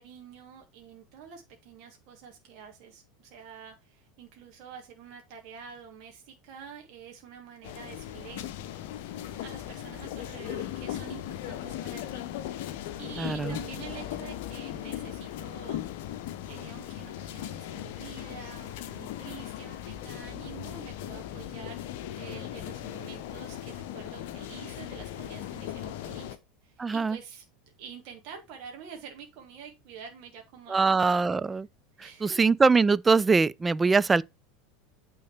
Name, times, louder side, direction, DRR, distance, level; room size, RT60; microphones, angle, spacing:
voice 1, 0.0-8.8 9.1-16.1 16.4-21.9 22.2-26.4 26.6-27.4 27.8-31.2 32.0-32.4, right 7 dB, 50° right, 1.7 m, -47 dB
sound 1, 7.6-26.4, left 12 dB, 55° left, 0.7 m, -38 dB
voice 2, 13.2-13.6 26.8-27.2 30.7-31.7 32.2-34.2, right 4 dB, 15° right, 0.3 m, -23 dB
8.4 x 3.8 x 4.4 m
figure-of-eight pair, 80°, 0 cm